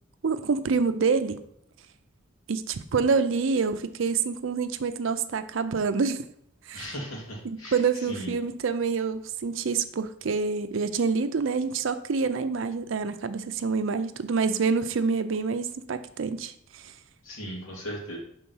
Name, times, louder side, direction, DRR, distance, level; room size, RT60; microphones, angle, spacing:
voice 1, 0.2-1.4 2.5-6.2 6.7-6.9 7.4-16.8, right 5 dB, 65° right, 11 dB, 0.5 m, -27 dB
voice 2, 6.7-7.8 8.1-8.3 17.2-18.2, equal, 85° left, -2 dB, 2.1 m, -37 dB
5.8 x 3.7 x 5.4 m, 0.68 s
head